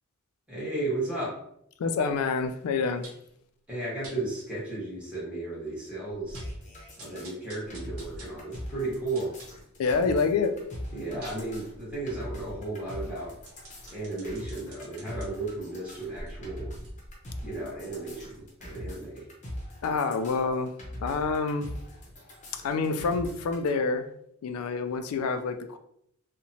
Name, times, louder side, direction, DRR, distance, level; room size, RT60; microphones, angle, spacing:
voice 1, 0.5-1.4 3.7-6.4 7.0-9.3 10.9-13.3 13.9-16.7 17.4-19.3, right 2 dB, 5° right, -8 dB, 1.2 m, -34 dB
voice 2, 1.8-3.1 9.8-10.6 19.8-20.7 21.0-21.7 22.6-24.1 24.4-25.8, left 4 dB, 80° left, 8 dB, 0.3 m, -27 dB
sound 1, 3.0-3.3 4.0-4.2 4.7-4.8 5.1-5.2 5.7-5.8 6.1-6.6 7.0-10.1 10.5-15.3 15.9-18.6 18.9-19.0, right 1 dB, 90° right, 0.8 m, -49 dB
sound 2, 6.3-23.7, equal, 35° left, 0.6 m, -42 dB
2.8 x 2.1 x 2.6 m, 0.72 s
head